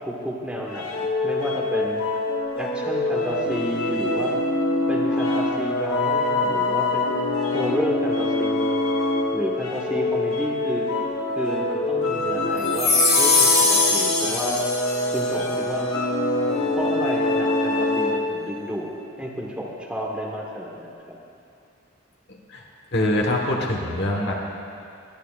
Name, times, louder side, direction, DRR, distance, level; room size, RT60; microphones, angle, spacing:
voice 1, 0.1-2.0 2.6-4.4 4.9-7.2 7.5-8.8 9.3-10.9 11.3-14.6 15.1-15.9 16.8-18.9 19.2-21.2, equal, 5° right, -3 dB, 1.2 m, -31 dB
sound 1, 0.7-18.4, left 2 dB, 80° left, 1.3 m, -24 dB
sound 2, 12.6-15.2, left 3 dB, 30° left, 3.0 m, -20 dB
voice 2, 22.3-22.6 22.9-24.3, left 1 dB, 50° left, 0 dB, 1.3 m, -24 dB
20.5 x 11.0 x 2.4 m, 2.6 s
head